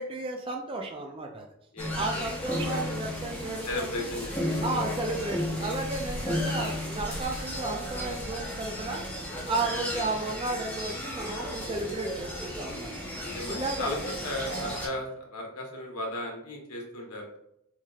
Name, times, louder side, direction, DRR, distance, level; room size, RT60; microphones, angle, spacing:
voice 1, 0.0-1.5 2.0-3.9 4.6-13.1 13.4-13.9, right 2 dB, 25° right, 2 dB, 0.3 m, -33 dB
voice 2, 1.7-2.2 2.6-2.7 3.7-4.9 9.7-10.0 13.2-14.0 14.2-17.4, left 1 dB, 90° left, 0 dB, 1.0 m, -36 dB
sound 1, 1.8-14.9, equal, 5° left, 0.7 m, -34 dB
4.6 x 2.8 x 2.3 m, 0.77 s
head